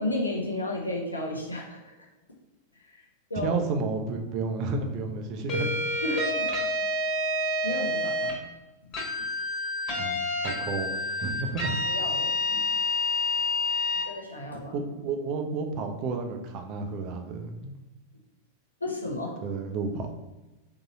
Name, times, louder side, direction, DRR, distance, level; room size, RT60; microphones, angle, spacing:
voice 1, 0.0-1.9 2.8-3.0 3.3-3.6 6.0-6.7 7.3-8.4 9.2-9.3 11.8-12.6 14.0-14.7 18.8-19.4, left 1 dB, 80° left, -1 dB, 0.7 m, -33 dB
voice 2, 3.3-5.8 10.0-10.2 10.4-11.8 14.7-17.8 19.4-20.1, right 4 dB, 40° right, 5 dB, 0.6 m, -31 dB
sound 1, 5.5-8.4 8.9-14.1, left 2 dB, 35° left, 1.3 m, -28 dB
3.9 x 2.9 x 4.1 m, 1.0 s
figure-of-eight pair, 90°, 0 cm